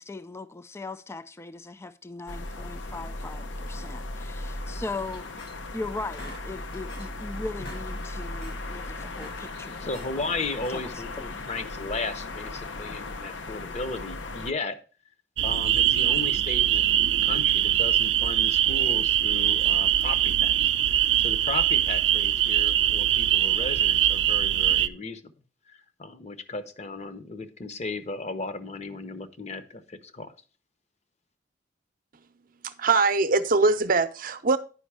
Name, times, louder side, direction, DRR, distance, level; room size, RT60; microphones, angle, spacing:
voice 1, 0.0-9.9 10.1-10.2 10.7-10.8, left 3 dB, 15° left, 0.3 m, -39 dB
sound 1, 2.3-14.5, left 2 dB, 85° left, 0.8 m, -37 dB
sound 2, 5.1-5.8 6.1-7.2 7.5-7.9 8.2-8.6 9.0-10.1 10.5-11.0, left 1 dB, 60° left, 1.3 m, -46 dB
voice 2, 9.8-14.8 15.4-20.6 20.9-25.3 25.7-30.3, left 3 dB, 40° left, 0.8 m, -35 dB
sound 3, 15.4-24.9, right 11 dB, 85° right, 0.4 m, -22 dB
voice 3, 32.6-34.6, right 3 dB, 50° right, 0.7 m, -22 dB
10.0 x 5.2 x 4.7 m
head